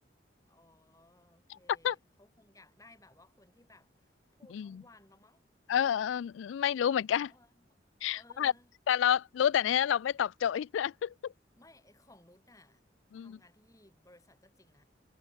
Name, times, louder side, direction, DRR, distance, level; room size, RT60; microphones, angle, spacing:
voice 1, 0.5-5.4 7.3-7.8 8.1-8.7 11.6-14.8, left 2 dB, 20° left, 4.9 m, -61 dB
voice 2, 5.7-7.3 8.0-8.5 8.9-11.3 13.1-13.4, left 9 dB, 85° left, 0.3 m, -29 dB
head